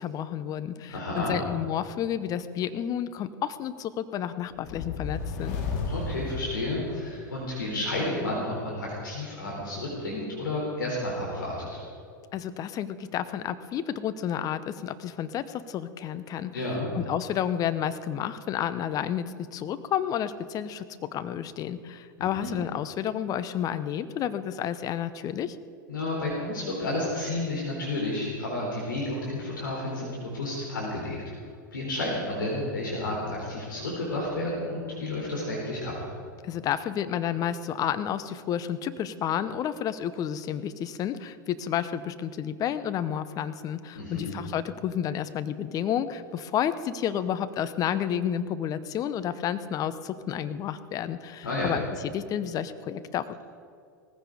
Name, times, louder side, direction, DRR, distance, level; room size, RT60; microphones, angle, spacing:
voice 1, 0.0-5.6 12.3-16.6 16.9-25.6 36.4-53.3, left 9 dB, 35° left, 12 dB, 0.9 m, -31 dB
voice 2, 0.9-1.3 5.9-11.8 16.5-16.9 22.4-22.5 25.9-31.2 31.7-35.9 43.9-44.3 51.4-51.7, left 1 dB, 75° left, -4 dB, 4.0 m, -31 dB
sound 1, 4.5-7.3, left 4 dB, 55° left, 2.8 m, -33 dB
18.5 x 15.0 x 5.1 m, 2.4 s
figure-of-eight pair, 90°, 11 cm